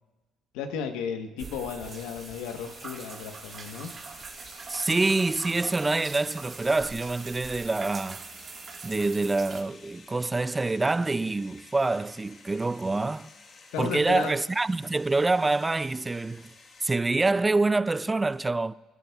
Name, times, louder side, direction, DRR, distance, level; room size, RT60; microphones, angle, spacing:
voice 1, 0.5-3.9 13.7-14.3, left 6 dB, 85° left, 1.1 m, -34 dB
sound 1, 1.4-9.6, right 5 dB, 45° right, 1.6 m, -42 dB
sound 2, 1.8-16.9, left 4 dB, 45° left, 1.4 m, -52 dB
voice 2, 4.7-8.2 8.8-13.3 13.8-16.5 16.8-18.7, right 3 dB, 20° right, 0.3 m, -26 dB
26.5 x 11.0 x 2.3 m
supercardioid pair, 80°, 0 cm